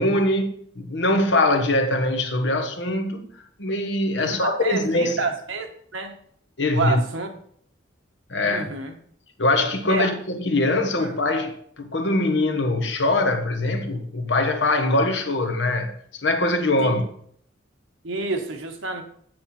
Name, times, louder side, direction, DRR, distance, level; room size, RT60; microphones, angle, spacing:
voice 1, 0.0-3.3 3.6-5.2 6.6-7.0 8.3-8.7 9.4-17.0, left 2 dB, 65° left, 1.2 m, -22 dB
voice 2, 4.2-5.7 5.9-6.1 6.7-7.3 8.4-8.9 9.9-10.1 11.0-11.1 16.8-17.0 18.0-19.0, right 3 dB, 80° right, 1.3 m, -28 dB
8.0 x 7.7 x 4.3 m
head